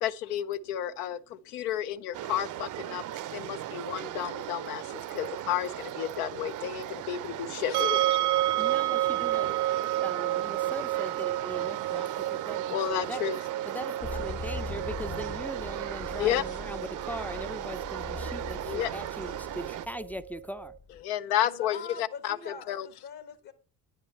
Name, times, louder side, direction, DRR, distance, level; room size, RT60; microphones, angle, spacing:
voice 1, 0.0-3.0 3.3-8.0 12.7-13.4 16.2-16.4 18.7-18.9 21.0-22.9, left 11 dB, 75° left, 0.6 m, -31 dB
sound 1, 2.1-19.9, right 12 dB, 45° right, 0.6 m, -38 dB
sound 2, 7.7-20.7, right 14 dB, 80° right, 1.1 m, -31 dB
voice 2, 8.6-13.2 13.7-20.8, equal, 5° left, 0.3 m, -40 dB
sound 3, 14.0-21.0, left 4 dB, 30° left, 0.9 m, -42 dB
voice 3, 14.1-14.6 21.4-23.5, left 6 dB, 55° left, 1.4 m, -44 dB
9.5 x 5.6 x 5.4 m
hypercardioid pair, 60°, 45 cm